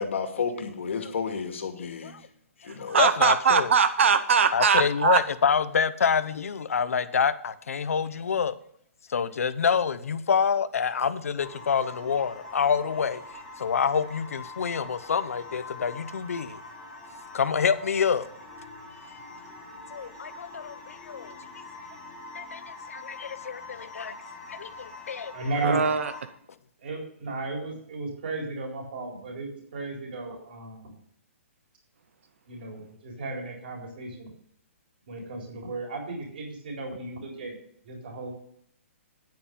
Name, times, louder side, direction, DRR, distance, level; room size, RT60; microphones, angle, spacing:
voice 1, 0.0-2.1 2.7-3.0, left 6 dB, 60° left, 5 dB, 2.2 m, -31 dB
voice 2, 1.8-2.2 2.9-3.7 4.5-8.5 9.1-13.2 13.6-16.6 17.3-18.3 19.1-19.2 19.9-21.3 22.3-22.6 22.9-24.1 24.5-25.3, left 6 dB, 85° left, 14 dB, 0.9 m, -27 dB
voice 3, 2.9-5.2 25.6-26.1, right 6 dB, 60° right, 11 dB, 0.8 m, -21 dB
sound 1, 11.4-26.3, left 2 dB, 5° left, 3.4 m, -44 dB
voice 4, 25.3-25.8 26.8-31.0 32.5-34.3 35.1-37.6 37.9-38.3, right 2 dB, 40° right, 0 dB, 4.0 m, -34 dB
9.7 x 8.7 x 5.4 m, 0.65 s
hypercardioid pair, 175°, 8 cm